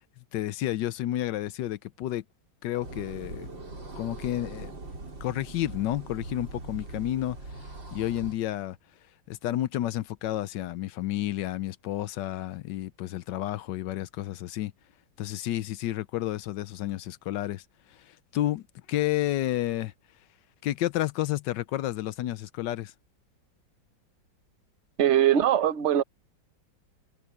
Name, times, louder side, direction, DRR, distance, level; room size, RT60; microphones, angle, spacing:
voice 1, 0.3-2.2 2.6-3.5 4.0-4.7 5.2-7.4 7.9-8.8 9.3-14.7 15.2-17.6 18.3-18.6 18.9-19.9 20.6-22.9, left 14 dB, 75° left, 1.3 m, -30 dB
sound 1, 2.8-8.4, right 2 dB, 80° right, 5.2 m, -41 dB
voice 2, 25.0-26.0, right 10 dB, 50° right, 0.9 m, -21 dB
omnidirectional pair, 2.0 m